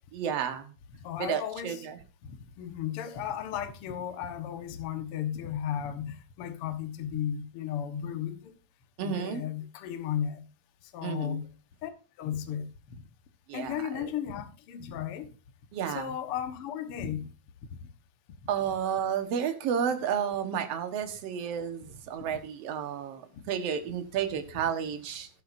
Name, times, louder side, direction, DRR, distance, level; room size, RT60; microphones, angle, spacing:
voice 1, 0.1-0.7 1.2-2.0 9.0-9.4 11.0-11.4 13.5-14.1 15.7-16.1 18.5-23.2 23.5-25.3, right 8 dB, 60° right, 1.7 m, -31 dB
voice 2, 1.0-1.9 2.2-8.5 9.0-10.4 10.9-11.5 11.8-11.9 12.2-13.0 13.5-15.3 15.9-17.3, left 9 dB, 65° left, 1.4 m, -35 dB
14.0 x 12.0 x 2.7 m
omnidirectional pair, 4.6 m